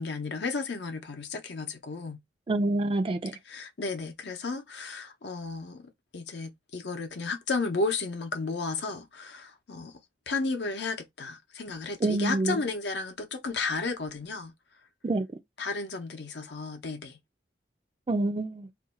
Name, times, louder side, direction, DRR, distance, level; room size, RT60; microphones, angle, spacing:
voice 1, 0.0-2.2 3.5-9.9 10.3-14.5 15.6-17.2, left 3 dB, 65° left, 0.7 m, -33 dB
voice 2, 2.5-3.4 12.0-12.6 15.0-15.3 18.1-18.7, right 2 dB, 30° right, 0.3 m, -27 dB
2.6 x 2.2 x 4.0 m
head